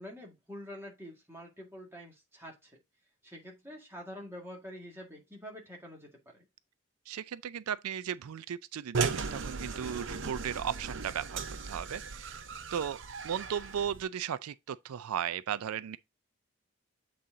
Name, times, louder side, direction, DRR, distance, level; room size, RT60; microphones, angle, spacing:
voice 1, 0.0-2.8 3.2-6.4, equal, 10° right, 1.8 m, -46 dB
voice 2, 7.1-12.4 12.7-16.0, right 8 dB, 90° right, 0.4 m, -36 dB
sound 1, 8.9-14.0, right 4 dB, 55° right, 0.7 m, -37 dB
7.6 x 4.1 x 3.7 m
head